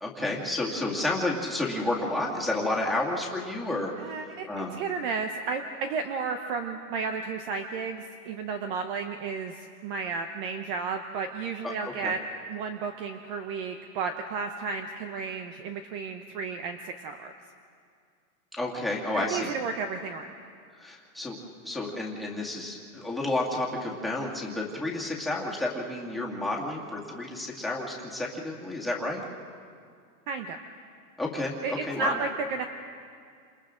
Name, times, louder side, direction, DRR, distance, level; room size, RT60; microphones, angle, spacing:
voice 1, 0.0-4.2 4.5-4.8 12.0-12.1 18.6-19.5 20.8-21.4 21.6-29.2 31.2-32.2, left 2 dB, ahead, -1 dB, 2.2 m, -31 dB
voice 2, 4.0-4.5 4.8-12.2 12.5-17.3 19.1-20.3 30.3-30.6 31.6-32.6, right 4 dB, 35° right, 6 dB, 0.9 m, -33 dB
29.5 x 27.5 x 3.8 m, 2.2 s
supercardioid pair, 155°, 48 cm